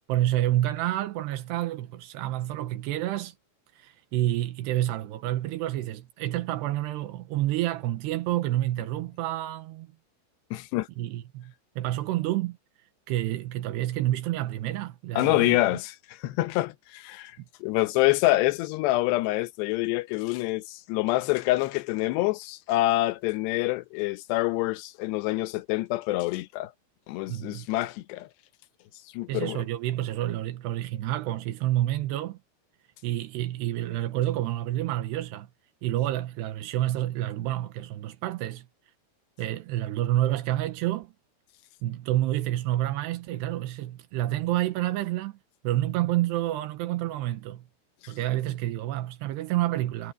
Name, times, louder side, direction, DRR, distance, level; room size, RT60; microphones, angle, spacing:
voice 1, 0.1-3.3 3.8-9.9 11.0-12.6 13.1-15.6 17.4-17.5 27.3-27.7 29.3-32.4 33.0-35.5 35.8-38.7 39.4-41.1 41.8-45.4 45.6-47.6 48.1-50.1, right 14 dB, 85° right, 3.1 m, -29 dB
voice 2, 10.5-10.9 15.1-26.7 27.1-28.3 29.1-29.6 48.0-48.1, left 18 dB, 85° left, 3.0 m, -26 dB
omnidirectional pair, 4.8 m